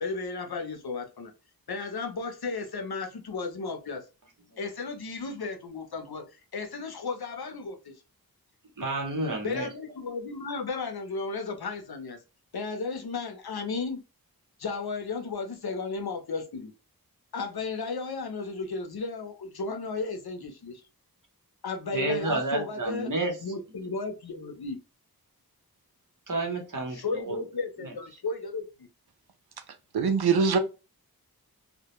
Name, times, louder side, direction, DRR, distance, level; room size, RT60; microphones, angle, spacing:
voice 1, 0.0-1.3 1.7-4.0 4.6-6.2 6.5-7.9 9.4-12.2 12.5-14.0 14.6-16.7 17.3-20.8 21.6-23.1 23.4-24.8 26.9-28.9, left 4 dB, 80° left, 0.6 m, -34 dB
voice 2, 8.8-9.7 21.9-23.3 26.3-27.4 27.8-27.9, right 2 dB, 55° right, 0.9 m, -30 dB
voice 3, 29.9-30.6, right 5 dB, 85° right, 0.5 m, -22 dB
2.2 x 2.1 x 2.9 m
wide cardioid pair, 45°, 37 cm